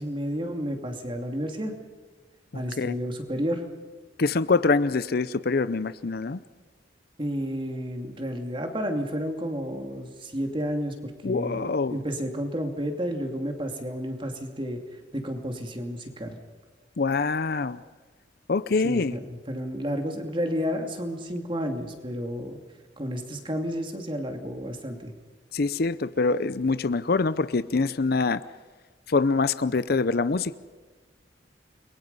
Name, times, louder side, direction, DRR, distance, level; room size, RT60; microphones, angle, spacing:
voice 1, 0.0-1.8 2.5-3.7 7.2-14.8 15.1-16.4 18.8-22.6 23.0-25.1, equal, 25° right, 4 dB, 2.7 m, -31 dB
voice 2, 2.5-2.9 4.2-6.4 11.2-12.0 17.0-17.8 18.5-19.2 25.5-28.4 29.1-30.6, left 4 dB, 55° left, 15 dB, 0.6 m, -25 dB
30.0 x 22.5 x 5.5 m, 1.3 s
head